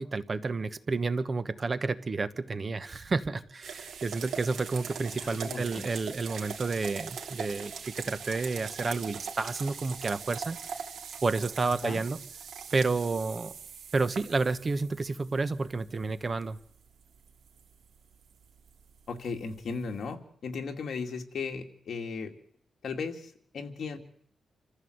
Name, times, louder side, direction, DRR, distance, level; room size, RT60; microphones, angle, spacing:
voice 1, 0.0-10.8 11.2-12.2 12.7-13.5 13.9-16.6, right 3 dB, 35° right, 13 dB, 1.1 m, -30 dB
sound 1, 3.6-20.1, right 6 dB, 85° right, 3.0 m, -42 dB
voice 2, 5.1-5.9 11.6-12.0 19.1-22.3 22.8-24.0, left 4 dB, 65° left, 4 dB, 2.4 m, -36 dB
27.0 x 15.0 x 7.9 m, 0.65 s
wide cardioid pair, 115°, 0 cm